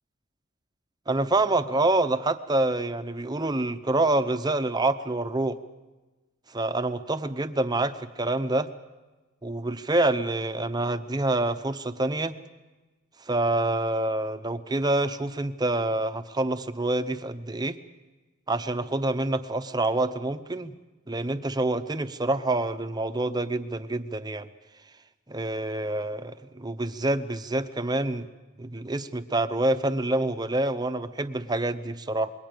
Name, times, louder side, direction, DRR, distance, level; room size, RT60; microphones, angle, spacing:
voice 1, 1.1-5.6 6.5-8.7 9.4-12.3 13.2-17.8 18.5-20.7 21.1-24.5 25.3-28.3 28.6-32.3, right 2 dB, 20° right, 9 dB, 0.8 m, -27 dB
27.0 x 22.0 x 5.2 m, 1.2 s
head